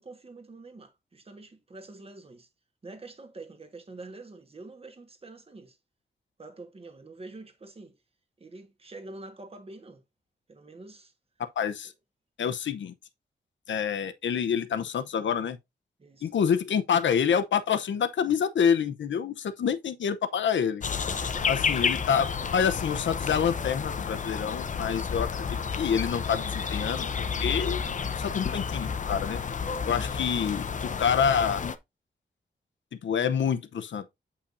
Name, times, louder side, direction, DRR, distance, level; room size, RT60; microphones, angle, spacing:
voice 1, 0.0-2.5 2.8-5.8 6.4-8.0 8.4-10.0 10.5-11.1 16.0-16.3 21.1-21.6, right 2 dB, 30° right, 1.4 m, -46 dB
voice 2, 11.4-11.9 12.4-12.9 13.7-15.6 16.2-20.8 21.5-25.3 25.7-27.8 28.2-29.4 29.9-31.6 33.0-34.1, left 7 dB, 85° left, 0.7 m, -27 dB
sound 1, 20.8-31.7, left 6 dB, 40° left, 0.6 m, -31 dB
8.3 x 5.6 x 2.6 m
wide cardioid pair, 160°, 19 cm